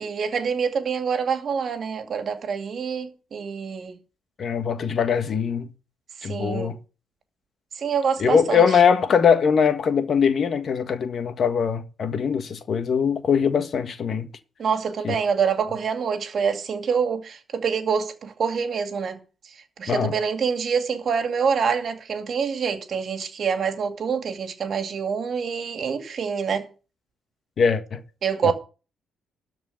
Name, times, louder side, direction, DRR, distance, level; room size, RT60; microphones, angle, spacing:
voice 1, 0.0-3.9 6.2-6.7 7.7-8.8 14.6-19.2 19.5-26.7 28.2-28.5, right 6 dB, 55° right, 2.3 m, -26 dB
voice 2, 4.4-5.7 6.2-6.7 8.2-14.3 15.0-15.1 19.9-20.1 27.6-28.0 28.4-28.5, left 6 dB, 55° left, 1.5 m, -21 dB
13.0 x 4.7 x 8.0 m
cardioid pair, 90°, 0 cm